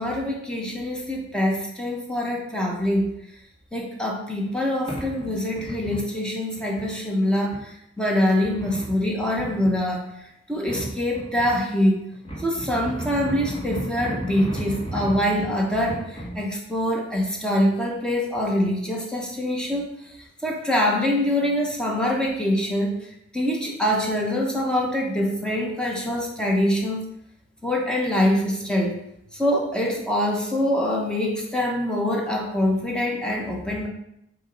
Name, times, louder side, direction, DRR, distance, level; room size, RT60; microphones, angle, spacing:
voice 1, 0.0-3.1 3.7-10.0 10.5-12.1 12.4-20.1 20.4-23.0 23.3-27.0 27.6-29.0 29.3-33.9, left 1 dB, 5° left, -1 dB, 1.1 m, -24 dB
sound 1, 4.4-4.5 4.9-6.1 6.5-6.9 7.5-7.6 8.4-9.7 10.6-11.6 12.1-16.4, right 1 dB, 35° left, 1.8 m, -33 dB
7.1 x 3.0 x 5.3 m, 0.79 s
head